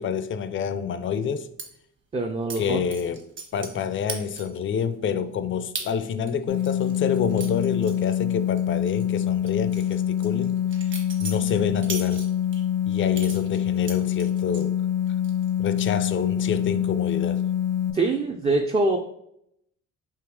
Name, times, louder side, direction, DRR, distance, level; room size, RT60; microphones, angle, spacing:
voice 1, 0.0-1.5 2.6-3.2 3.5-10.6 11.2-12.3 12.9-14.7 15.6-17.4, left 7 dB, 40° left, 0.4 m, -28 dB
sound 1, 1.6-1.7 2.5-2.6 2.9-3.8 4.1-4.6 5.1-5.2 5.8-5.9 6.3-8.6 8.9-9.0 9.5-12.6 13.1-14.7 15.1-15.5 15.8-16.2, right 4 dB, 40° right, 1.1 m, -37 dB
voice 2, 2.1-2.8 17.9-19.0, right 2 dB, 20° right, 0.4 m, -24 dB
sound 2, 6.5-17.9, left 10 dB, 90° left, 0.8 m, -25 dB
3.5 x 2.8 x 4.6 m
cardioid pair, 90°, 30 cm